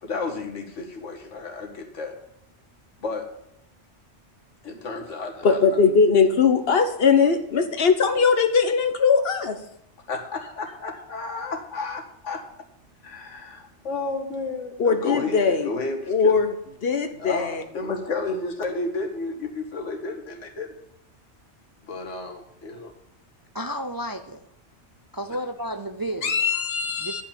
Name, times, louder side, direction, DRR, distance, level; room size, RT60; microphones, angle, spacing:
voice 1, 0.0-2.2 3.0-3.3 4.6-5.6 10.1-12.4 13.0-16.4 17.2-20.7 21.9-22.9, left 3 dB, 90° left, 2 dB, 2.0 m, -32 dB
voice 2, 5.4-9.6 14.8-15.7 16.1-16.5 16.8-17.6 26.2-27.2, left 5 dB, 55° left, 8 dB, 1.3 m, -20 dB
voice 3, 23.5-24.5 25.1-26.5 27.0-27.2, equal, 25° right, 7 dB, 0.4 m, -32 dB
11.0 x 5.8 x 8.6 m, 0.76 s
omnidirectional pair, 1.2 m